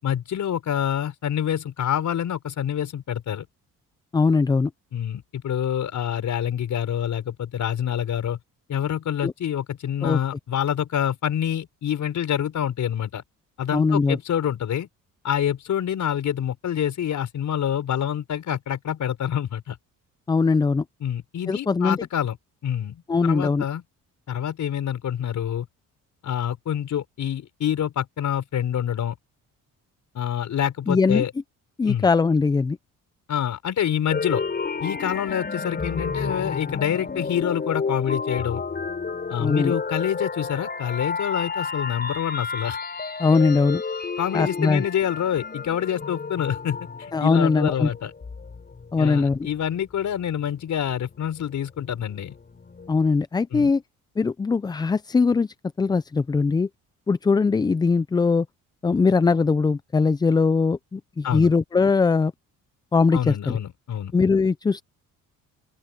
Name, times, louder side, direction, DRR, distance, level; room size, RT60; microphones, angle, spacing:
voice 1, 0.0-3.5 4.9-8.4 8.7-13.2 13.6-14.9 15.2-19.8 21.0-22.4 22.6-23.8 24.3-25.6 26.2-29.1 30.1-31.3 31.8-32.1 33.3-34.4 34.8-38.6 39.3-42.8 44.2-48.1 49.0-52.4 53.5-53.7 61.2-61.5 63.1-64.1, left 9 dB, 60° left, 5.3 m, -27 dB
voice 2, 4.1-4.7 9.2-9.3 10.0-10.2 13.7-14.2 20.3-20.8 21.5-22.0 23.1-23.6 30.9-31.2 31.8-32.8 39.4-39.7 43.2-43.8 44.3-44.8 47.1-47.9 48.9-49.5 52.9-53.8 54.2-56.7 57.1-58.5 58.8-62.3 62.9-63.6 64.1-64.8, left 4 dB, 15° left, 0.3 m, -21 dB
sound 1, 34.1-49.8 50.3-53.1, left 4 dB, 30° left, 5.5 m, -31 dB
open air
cardioid pair, 100°, 33 cm